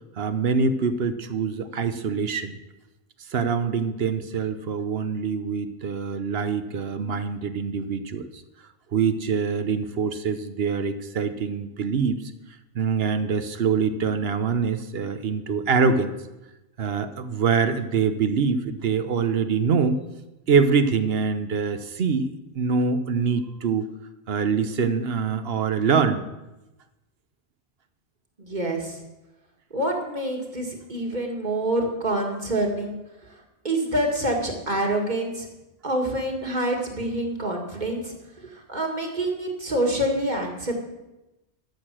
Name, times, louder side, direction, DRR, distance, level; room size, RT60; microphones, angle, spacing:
voice 1, 0.2-2.5 3.3-8.4 8.9-12.3 12.7-16.2 16.8-20.0 20.5-23.9 24.3-26.2, right 5 dB, 65° right, 11 dB, 1.1 m, -24 dB
voice 2, 28.4-29.0 29.7-33.0 33.6-35.5 35.8-40.7, right 1 dB, 40° right, 1 dB, 2.1 m, -26 dB
13.0 x 6.8 x 7.5 m, 0.98 s
omnidirectional pair, 1.1 m